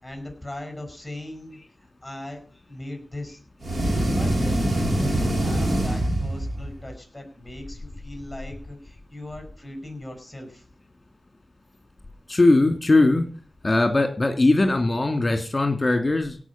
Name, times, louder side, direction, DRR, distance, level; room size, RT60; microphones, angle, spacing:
voice 1, 0.0-2.4 2.7-3.4 4.1-10.6, left 1 dB, 10° left, 5 dB, 6.5 m, -39 dB
sound 1, 3.6-6.8, right 1 dB, 50° right, 5.0 m, -24 dB
voice 2, 12.3-13.2 13.6-16.4, left 2 dB, 30° left, 6 dB, 2.8 m, -20 dB
17.0 x 6.0 x 8.7 m, 0.41 s
wide cardioid pair, 75°, 0 cm